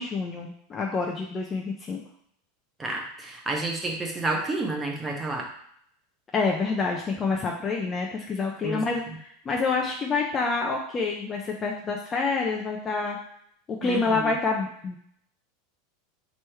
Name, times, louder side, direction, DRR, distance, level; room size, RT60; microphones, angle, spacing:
voice 1, 0.0-2.0 6.3-13.2 13.7-15.0, left 4 dB, 15° left, 0 dB, 0.4 m, -27 dB
voice 2, 2.8-5.5 8.6-8.8 13.8-14.3, right 2 dB, 10° right, 0 dB, 0.7 m, -30 dB
3.3 x 3.0 x 4.6 m, 0.67 s
supercardioid pair, 170°, 0 cm